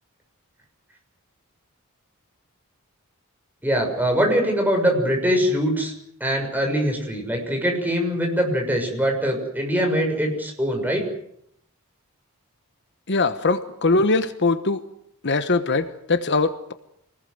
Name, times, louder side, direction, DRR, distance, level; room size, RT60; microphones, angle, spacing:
voice 1, 3.6-5.9 6.2-11.0, equal, 10° right, 2 dB, 6.7 m, -22 dB
voice 2, 13.1-14.8 15.2-16.7, left 3 dB, 55° left, 10 dB, 1.2 m, -21 dB
26.5 x 20.0 x 7.9 m, 0.72 s
head